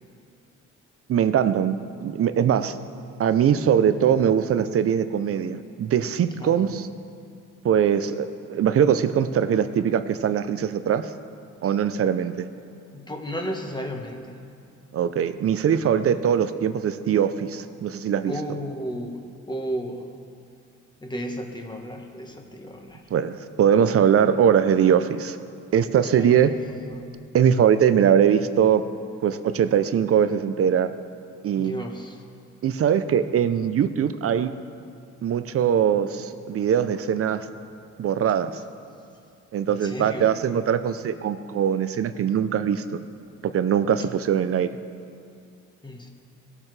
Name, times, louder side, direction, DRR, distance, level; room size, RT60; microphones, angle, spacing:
voice 1, 1.1-2.8 3.2-6.9 7.6-11.1 11.6-12.5 14.9-18.3 23.1-25.4 25.7-26.5 27.3-28.8 29.2-30.9 31.4-31.7 32.6-34.5 35.2-37.5 38.0-38.5 39.5-43.0 43.4-44.7, right 8 dB, 50° right, 11 dB, 0.6 m, -21 dB
voice 2, 6.4-6.8 12.9-14.4 18.3-20.1 21.0-23.0 26.0-26.6 26.9-27.2 31.6-32.2 38.9-39.0 39.7-40.4 45.8-46.1, equal, 15° left, 2 dB, 1.3 m, -34 dB
18.0 x 7.3 x 3.3 m, 2.4 s
cardioid pair, 90°, 30 cm